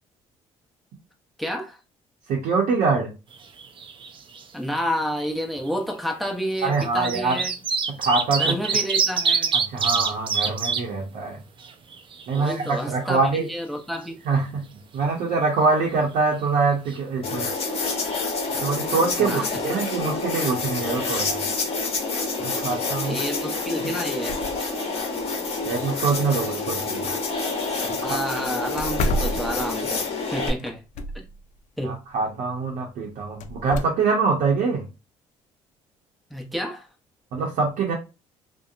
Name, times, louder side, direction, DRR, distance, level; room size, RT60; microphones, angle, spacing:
voice 1, 1.4-1.8 4.5-7.5 8.4-9.5 12.3-14.2 19.2-19.6 23.0-24.5 27.7-30.8 31.1-31.2 31.8-32.0 36.3-36.9, equal, ahead, 0.8 m, -30 dB
voice 2, 2.3-3.1 6.6-7.4 7.9-8.6 9.5-11.4 12.3-13.5 14.3-14.7 14.9-17.5 18.6-21.4 22.4-23.2 25.6-27.2 27.8-28.2 31.8-34.9 37.3-37.9, right 4 dB, 70° right, 0.7 m, -24 dB
sound 1, 3.3-4.1 4.3-4.4 5.6-5.7 6.6-10.8 11.3-11.4 11.6-12.7 16.6-16.7 16.9-17.0, right 5 dB, 40° right, 0.5 m, -25 dB
sound 2, 17.2-30.5, left 3 dB, 50° left, 0.9 m, -28 dB
sound 3, 27.3-27.4 27.7-27.8 28.2-28.3 28.8-30.0 30.6-31.4 33.4-33.8, left 1 dB, 65° left, 0.4 m, -28 dB
2.7 x 2.1 x 2.4 m
supercardioid pair, 70°, 14 cm